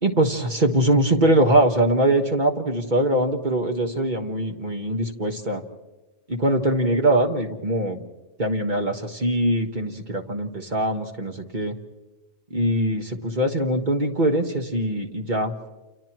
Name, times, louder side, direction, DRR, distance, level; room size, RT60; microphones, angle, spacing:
voice 1, 0.0-5.6 6.3-8.0 8.4-11.7 12.5-15.7, right 1 dB, 40° right, 4 dB, 1.7 m, -22 dB
29.0 x 29.0 x 3.0 m, 1.1 s
omnidirectional pair, 1.2 m